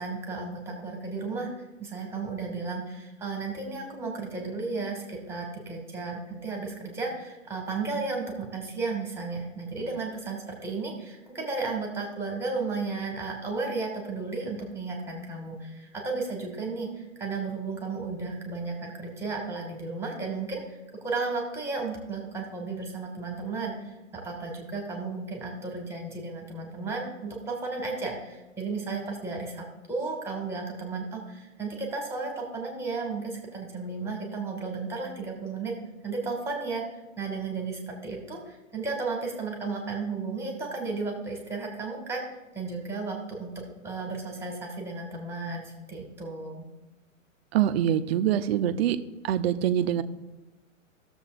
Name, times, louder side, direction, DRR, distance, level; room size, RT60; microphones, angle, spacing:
voice 1, 0.0-35.7 36.0-36.8 37.2-46.7, right 3 dB, 5° right, 0 dB, 1.9 m, -34 dB
voice 2, 47.5-49.0 49.2-50.0, right 10 dB, 50° right, 11 dB, 0.7 m, -24 dB
18.0 x 7.1 x 2.5 m, 1.1 s
hypercardioid pair, 135°, 39 cm